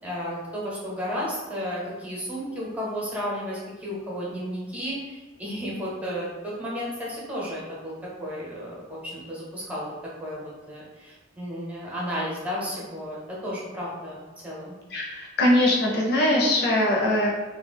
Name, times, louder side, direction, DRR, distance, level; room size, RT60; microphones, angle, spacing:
voice 1, 0.0-9.9 10.2-14.7, equal, 5° right, -7 dB, 0.8 m, -33 dB
voice 2, 14.9-17.3, left 1 dB, 55° left, -2 dB, 0.7 m, -21 dB
2.4 x 2.2 x 3.4 m, 1.2 s
head